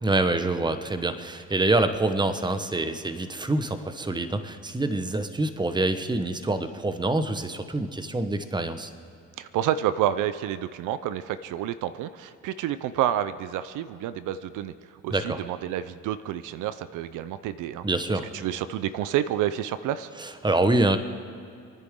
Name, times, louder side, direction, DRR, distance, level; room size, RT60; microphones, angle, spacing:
voice 1, 0.0-8.9 15.1-15.4 17.8-18.3 20.2-21.0, right 2 dB, 15° right, 9 dB, 1.1 m, -26 dB
voice 2, 9.4-14.7 15.0-17.8 18.3-20.1, right 11 dB, 90° right, 13 dB, 0.6 m, -29 dB
28.5 x 10.0 x 3.7 m, 2.5 s
cardioid pair, 90°, 30 cm